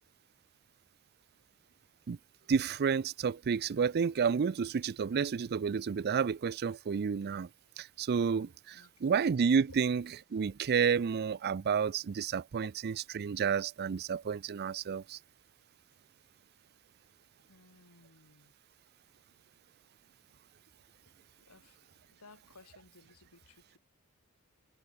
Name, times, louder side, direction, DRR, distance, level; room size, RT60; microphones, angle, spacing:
voice 1, 2.5-7.5 7.8-8.8 9.0-15.2, right 6 dB, 45° right, 0.4 m, -30 dB
voice 2, 17.5-18.5 21.5-21.7 22.2-23.8, left 3 dB, 90° left, 2.9 m, -59 dB
head